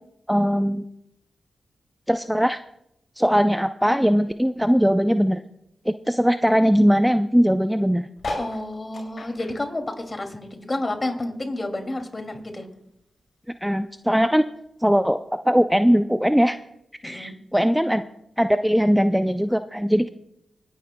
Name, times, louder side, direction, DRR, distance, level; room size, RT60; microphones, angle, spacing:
voice 1, 0.3-0.9 2.1-2.6 3.2-5.4 5.9-8.1 13.6-14.4 14.8-16.6 17.0-18.0 18.4-20.1, equal, 5° right, 9 dB, 0.5 m, -20 dB
sound 1, 8.2-10.9 11.3-12.8 13.3-13.4 13.5-13.6 13.8-14.2 15.0-15.1, left 2 dB, 65° left, 5.4 m, -36 dB
voice 2, 8.4-12.7 17.0-17.3, left 2 dB, 35° left, 5 dB, 2.4 m, -30 dB
25.5 x 10.0 x 2.2 m, 0.79 s
cardioid pair, 50°, 0 cm